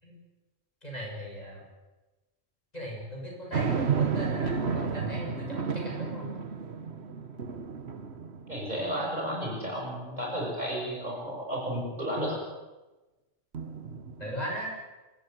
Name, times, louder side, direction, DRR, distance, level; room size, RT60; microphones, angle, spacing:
voice 1, 0.8-1.7 2.7-6.3 14.2-14.8, equal, 35° left, -2 dB, 7.5 m, -38 dB
sound 1, 3.5-9.1 9.6-9.7 13.5-14.6, right 6 dB, 60° right, 1.6 m, -32 dB
voice 2, 8.5-12.4, equal, 35° right, -2 dB, 7.2 m, -32 dB
28.0 x 14.5 x 9.6 m, 1.1 s
omnidirectional pair, 1.2 m